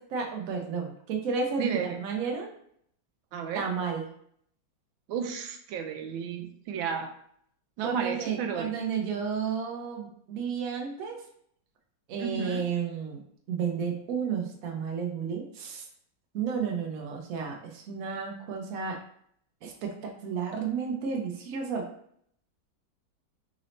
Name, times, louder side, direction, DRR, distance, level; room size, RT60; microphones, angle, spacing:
voice 1, 0.1-2.5 3.5-4.1 7.8-11.2 12.1-13.2 13.5-15.8 16.3-19.0 19.6-21.8, right 6 dB, 65° right, 2 dB, 0.9 m, -32 dB
voice 2, 1.6-2.0 3.3-3.7 5.1-7.1 7.8-8.9 12.2-12.7, right 7 dB, 80° right, 5 dB, 1.3 m, -32 dB
3.9 x 2.7 x 3.1 m, 0.66 s
omnidirectional pair, 2.2 m